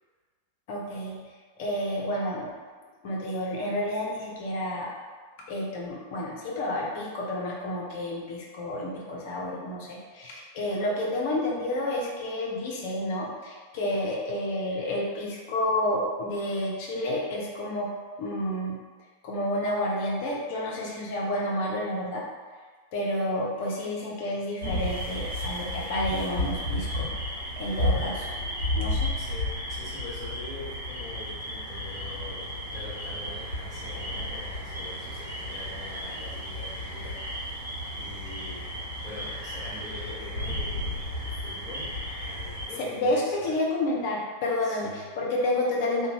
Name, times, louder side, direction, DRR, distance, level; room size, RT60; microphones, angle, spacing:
voice 1, 0.7-1.2 1.6-2.5 3.0-4.9 5.5-17.9 18.2-18.8 19.2-22.2 22.9-27.1 27.6-28.3 28.7-29.1 43.0-46.1, left 1 dB, 50° left, -3 dB, 0.6 m, -30 dB
sound 1, 24.6-42.7, left 1 dB, 80° right, 1.0 m, -33 dB
voice 2, 29.2-37.2 37.9-43.6 44.6-45.0, left 2 dB, 20° left, -10 dB, 1.4 m, -44 dB
2.6 x 2.1 x 2.8 m, 1.5 s
figure-of-eight pair, 90°, 0 cm